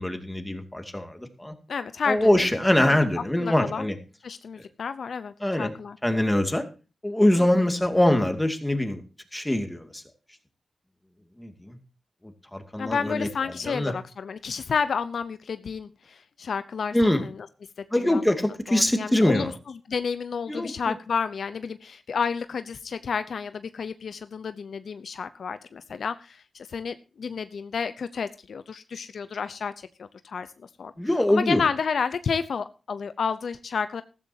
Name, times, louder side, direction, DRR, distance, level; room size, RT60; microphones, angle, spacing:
voice 1, 0.0-1.5 2.1-4.0 4.6-4.7 5.4-5.7 6.0-6.7 7.0-9.0 9.3-10.0 11.4-11.8 12.2-13.3 13.6-13.9 16.9-17.2 17.9-19.5 20.5-20.9 31.0-31.6, left 1 dB, 10° left, 6 dB, 2.4 m, -23 dB
voice 2, 1.7-2.3 2.8-3.0 3.4-3.9 4.2-6.0 7.4-7.5 12.8-17.5 18.0-18.2 18.7-19.5 19.9-30.9 31.3-34.0, left 6 dB, 70° left, 12 dB, 0.7 m, -31 dB
14.5 x 14.0 x 2.8 m, 0.34 s
cardioid pair, 85°, 0 cm